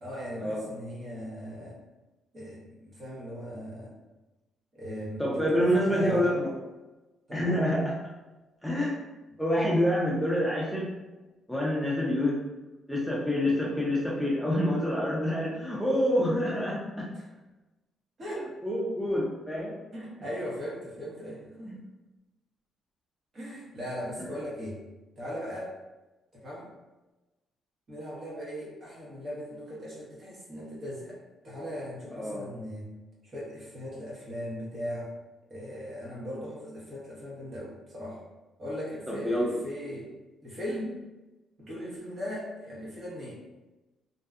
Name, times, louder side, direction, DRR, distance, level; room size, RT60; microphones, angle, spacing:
voice 1, 0.0-1.8 2.3-3.9 4.7-6.3 7.3-7.7 17.1-17.3 18.2-18.5 19.9-21.8 23.3-24.8 25.2-25.7 26.3-26.7 27.9-31.2 31.4-32.9 33.2-35.1 35.5-38.2 38.6-40.1 40.4-41.0 41.6-43.4, equal, 45° right, -6 dB, 1.0 m, -38 dB
voice 2, 5.2-6.5 7.3-8.0 8.6-9.0 9.4-10.9 11.5-12.4 12.9-17.1 18.6-19.7 21.6-21.8 32.1-32.5 39.1-39.5, equal, ahead, -5 dB, 0.5 m, -27 dB
2.6 x 2.2 x 2.4 m, 1.1 s
cardioid pair, 90°, 0 cm